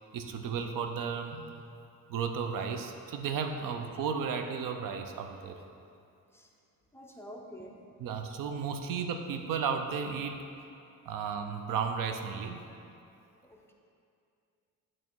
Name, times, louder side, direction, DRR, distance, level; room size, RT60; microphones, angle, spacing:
voice 1, 0.1-1.5 2.1-5.6 8.0-10.4 11.1-12.6, right 6 dB, 75° right, 6 dB, 0.5 m, -34 dB
voice 2, 6.9-7.8 13.2-13.7, equal, 10° left, -1 dB, 0.5 m, -48 dB
8.4 x 3.1 x 4.5 m, 2.5 s
cardioid pair, 125°, 33 cm